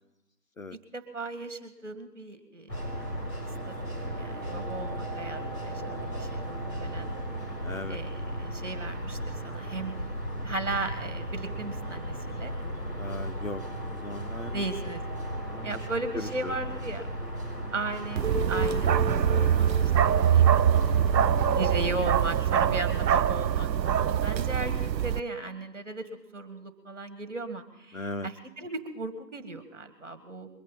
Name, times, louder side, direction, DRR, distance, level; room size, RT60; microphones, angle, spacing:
voice 1, 0.9-3.3 3.7-7.1 7.9-9.9 10.4-12.5 14.5-15.0 15.6-17.1 17.7-20.9 21.5-26.1 26.3-30.5, right 2 dB, 45° right, 9 dB, 1.9 m, -37 dB
sound 1, 2.7-21.8, equal, 90° left, 5.1 m, -35 dB
voice 2, 7.6-8.0 13.0-13.6 13.9-14.6 15.4-15.8 16.1-16.6 20.5-20.6 22.6-22.8 27.9-28.3, left 2 dB, 55° left, 12 dB, 0.6 m, -38 dB
sound 2, 18.2-22.3, equal, 10° right, 5.0 m, -37 dB
Bark, 18.2-25.2, right 9 dB, 90° right, 0.5 m, -24 dB
22.5 x 8.5 x 5.5 m, 0.86 s
figure-of-eight pair, 165°, 50 cm